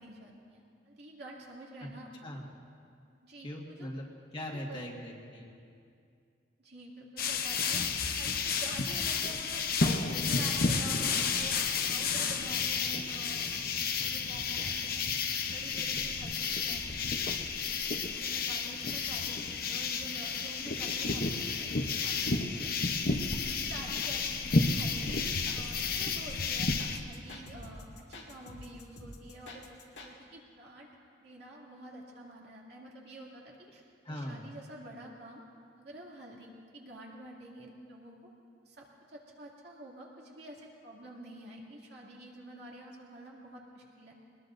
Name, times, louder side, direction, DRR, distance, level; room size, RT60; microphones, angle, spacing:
voice 1, 0.0-2.1 3.2-3.9 4.4-4.9 6.6-7.8 8.2-13.5 14.0-15.0 15.4-17.1 18.2-22.7 23.5-26.7 27.1-29.6 30.0-30.9 31.2-35.4 35.8-38.2 38.6-44.1, right 1 dB, 65° right, -3 dB, 2.5 m, -48 dB
voice 2, 3.4-5.5 34.0-34.5, left 1 dB, 30° left, -1 dB, 1.7 m, -40 dB
sound 1, 7.2-27.0, left 4 dB, 55° left, 0.8 m, -31 dB
sound 2, 24.8-30.1, left 2 dB, 75° left, 2.0 m, -48 dB
22.0 x 20.5 x 2.6 m, 2.4 s
head